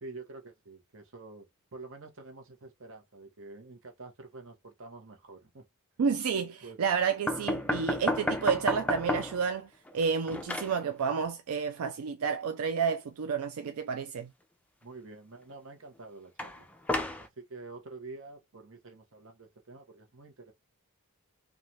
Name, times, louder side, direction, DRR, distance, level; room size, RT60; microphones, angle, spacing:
voice 1, 0.0-5.6 6.6-6.8 14.8-16.7 17.2-20.5, right 3 dB, 60° right, 0.9 m, -48 dB
voice 2, 6.0-14.3, right 6 dB, 85° right, 0.4 m, -30 dB
sound 1, 7.3-9.5 9.9-10.8 16.4-17.3, left 1 dB, 5° left, 0.4 m, -31 dB
3.1 x 2.4 x 2.7 m
head